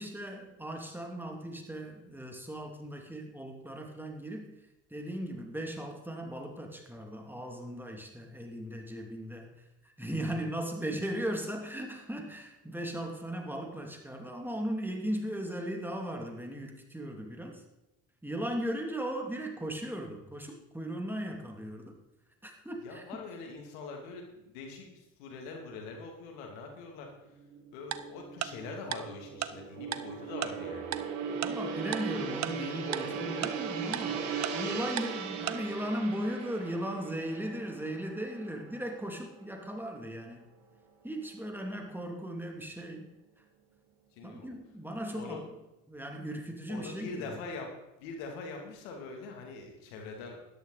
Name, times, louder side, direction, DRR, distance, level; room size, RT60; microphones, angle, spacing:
voice 1, 0.0-4.5 4.9-9.5 9.8-17.6 18.2-21.9 22.4-23.2 31.3-40.4 41.0-43.1 44.2-45.4 45.9-47.4, right 1 dB, 5° right, 2 dB, 2.6 m, -37 dB
voice 2, 22.8-27.1 27.7-30.9 44.1-44.5 45.1-45.4 46.7-50.4, left 3 dB, 80° left, 2 dB, 2.8 m, -43 dB
Gong, 27.4-39.8 40.2-40.4, right 6 dB, 75° right, 2.4 m, -38 dB
Tick-tock, 27.9-28.0 28.4-28.5 28.9-29.0 29.4-29.5 29.9-30.0 30.4-30.5 30.9-31.0 31.4-31.5 31.9-32.0 32.4-32.5 32.9-33.0 33.4-33.5 33.9-34.0 34.4-34.5 35.0-35.1 35.5-35.6, right 11 dB, 50° right, 0.8 m, -32 dB
13.0 x 11.5 x 4.2 m, 0.94 s
hypercardioid pair, 70°, 36 cm